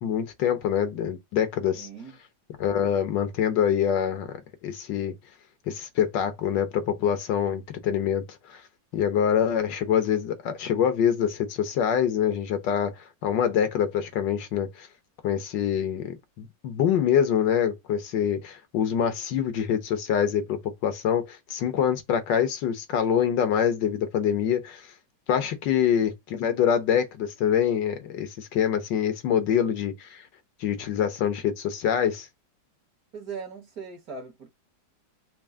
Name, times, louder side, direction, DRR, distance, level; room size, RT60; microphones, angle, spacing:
voice 1, 0.0-1.9 2.6-4.4 4.6-5.1 5.7-8.6 8.9-12.9 13.2-14.9 15.2-24.9 25.3-30.2 30.6-32.3, left 8 dB, 75° left, 1.5 m, -25 dB
voice 2, 1.8-2.2 33.1-34.5, right 5 dB, 55° right, 1.6 m, -39 dB
4.5 x 2.1 x 3.5 m
omnidirectional pair, 2.0 m